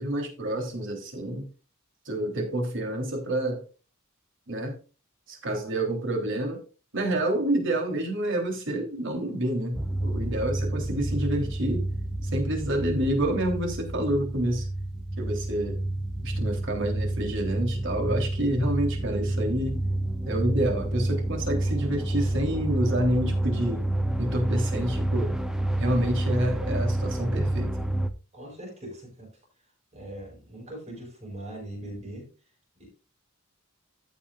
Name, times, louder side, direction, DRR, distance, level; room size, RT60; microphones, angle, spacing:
voice 1, 0.0-1.5 2.0-3.6 4.5-4.8 5.3-6.6 6.9-11.9 12.2-14.7 15.2-15.8 16.2-19.8 20.2-23.8 24.2-25.3 25.8-27.7, right 1 dB, 65° right, 3.4 m, -28 dB
sound 1, 9.7-28.1, right 1 dB, 5° right, 0.6 m, -29 dB
voice 2, 28.3-29.3 29.9-32.3 32.8-32.9, right 1 dB, 30° right, 5.3 m, -40 dB
15.0 x 7.1 x 2.5 m
head